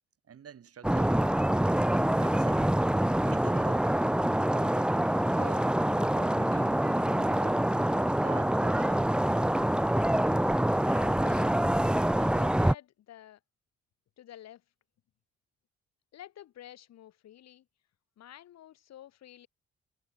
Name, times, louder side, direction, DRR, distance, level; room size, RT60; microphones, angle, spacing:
voice 1, 0.3-1.2 2.2-2.7 3.2-3.9 4.5-5.0 5.2-7.7 8.1-9.1, right 8 dB, 50° right, 4.8 m, -47 dB
sound 1, 0.8-12.7, right 1 dB, 5° right, 0.7 m, -26 dB
voice 2, 10.4-11.6 12.1-13.4 14.2-14.6 16.1-17.7 18.2-19.5, left 12 dB, 60° left, 2.6 m, -50 dB
figure-of-eight pair, 40°, 30 cm